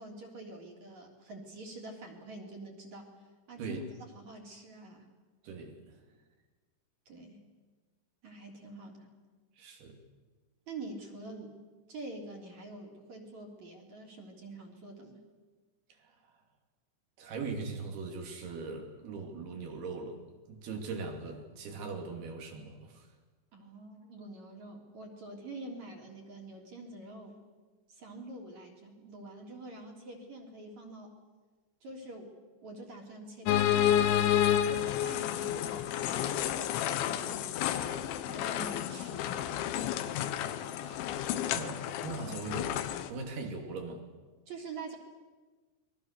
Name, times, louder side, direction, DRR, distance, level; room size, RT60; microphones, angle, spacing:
voice 1, 0.0-3.1 3.5-5.0 7.1-7.4 8.2-9.1 10.7-11.6 11.9-15.2 23.5-27.4 27.9-31.1 31.8-32.3 32.6-34.1 34.7-37.7 38.3-40.0 44.5-45.0, right 2 dB, 40° right, 1 dB, 4.4 m, -46 dB
voice 2, 5.4-6.0 9.6-9.9 16.0-16.1 17.2-20.2 20.5-23.1 40.8-41.0 41.5-44.0, right 4 dB, 60° right, 3 dB, 4.6 m, -40 dB
sound 1, 33.5-43.1, left 11 dB, 90° left, 3.5 m, -30 dB
28.0 x 22.5 x 6.8 m, 1.3 s
omnidirectional pair, 5.2 m